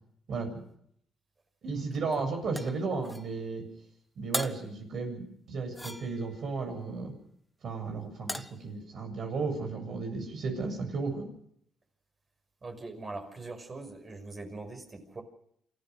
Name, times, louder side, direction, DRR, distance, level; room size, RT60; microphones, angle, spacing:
voice 1, 0.3-0.6 1.6-3.6 4.2-7.1 7.6-11.3, right 4 dB, 60° right, 4 dB, 7.6 m, -34 dB
sound 1, 2.5-3.3 4.3-4.7 5.7-6.4 8.3-8.6, left 1 dB, 5° left, 0.9 m, -37 dB
voice 2, 12.6-15.2, right 3 dB, 35° right, 4 dB, 5.9 m, -42 dB
28.0 x 15.0 x 6.3 m, 0.70 s
cardioid pair, 90°, 0 cm